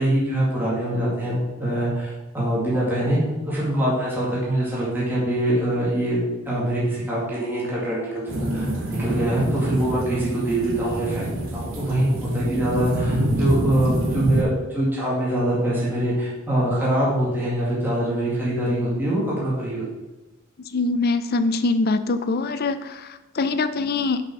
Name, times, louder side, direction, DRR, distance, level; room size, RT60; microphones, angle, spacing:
voice 1, 0.0-3.2 3.5-8.7 9.0-11.3 11.5-19.8, right 1 dB, 10° right, -7 dB, 2.1 m, -24 dB
sound 1, 8.3-14.4, right 1 dB, 75° right, 1.7 m, -26 dB
voice 2, 20.6-24.2, left 3 dB, 50° left, 11 dB, 0.5 m, -23 dB
6.2 x 5.6 x 5.9 m, 1.1 s
head